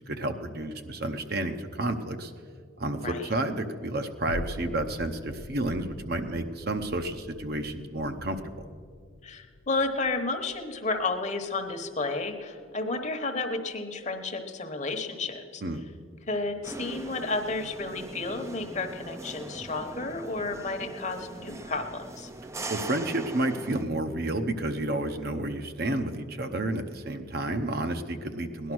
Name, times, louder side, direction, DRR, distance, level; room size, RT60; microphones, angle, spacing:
voice 1, 0.1-2.3 2.8-8.5 15.6-15.8 22.7-28.7, right 1 dB, 50° right, 7 dB, 0.8 m, -31 dB
sound 1, 4.3-12.8 13.3-13.4, left 1 dB, 85° left, 0.6 m, -44 dB
voice 2, 9.2-15.6 16.3-22.3, left 3 dB, 35° left, 6 dB, 1.0 m, -32 dB
sound 2, 16.6-23.8, right 2 dB, 15° right, 0.4 m, -41 dB
17.5 x 11.0 x 6.1 m, 2.2 s
head